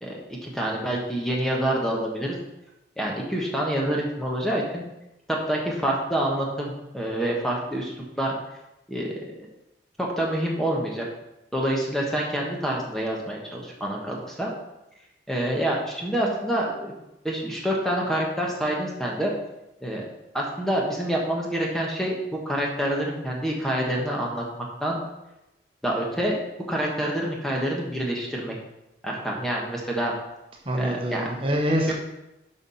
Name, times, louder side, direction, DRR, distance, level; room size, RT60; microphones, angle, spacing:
voice 1, 0.0-2.4 3.0-4.8 5.3-8.3 8.9-9.1 10.0-11.1 11.5-14.5 15.3-16.9 17.2-19.3 19.8-20.0 20.3-24.4 24.8-25.0 25.8-26.4 26.7-28.5 29.0-30.1 30.8-31.2 31.8-31.9, right 1 dB, ahead, -2 dB, 1.1 m, -27 dB
voice 2, 30.7-31.9, equal, 30° right, -1 dB, 1.1 m, -25 dB
7.0 x 5.6 x 5.5 m, 0.93 s
head